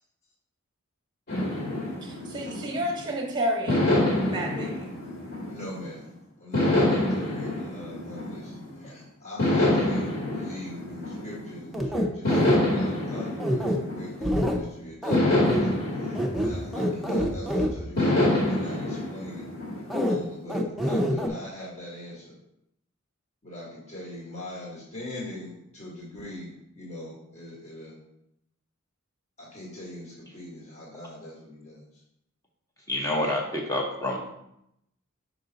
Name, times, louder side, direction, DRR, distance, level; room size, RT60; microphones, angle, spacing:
sound 1, 1.3-3.1 3.7-5.9 6.5-8.8 9.4-11.6 12.2-14.5 15.1-17.4 18.0-20.2, left 1 dB, 50° left, 2.0 m, -27 dB
voice 1, 2.0-3.9 4.3-4.8, equal, 20° right, 1 dB, 1.0 m, -30 dB
voice 2, 5.5-6.1 6.4-19.4 20.0-22.4 23.4-28.0 29.4-31.8, left 1 dB, 35° left, -6 dB, 1.5 m, -41 dB
sound 2, 11.7-12.6 13.4-13.8 14.2-14.6 15.0-15.2 15.4-15.6 16.1-17.7 19.9-20.2 20.5-21.3, equal, ahead, 0.6 m, -25 dB
voice 3, 32.9-34.2, left 1 dB, 15° left, -1 dB, 1.1 m, -27 dB
5.3 x 4.8 x 4.0 m, 0.80 s
head